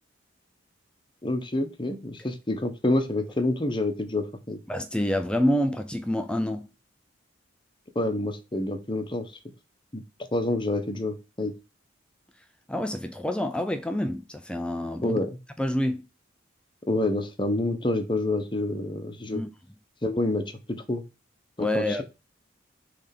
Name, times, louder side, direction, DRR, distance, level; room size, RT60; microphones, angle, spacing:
voice 1, 1.2-4.6 7.9-9.3 9.9-10.0 10.3-11.5 15.0-15.3 16.9-19.4 20.0-21.0 21.6-22.0, left 2 dB, 25° left, 1.1 m, -28 dB
voice 2, 4.7-6.7 12.7-15.2 15.6-16.0 19.3-19.5 21.6-22.0, left 1 dB, 5° left, 0.5 m, -27 dB
7.1 x 3.5 x 5.8 m
head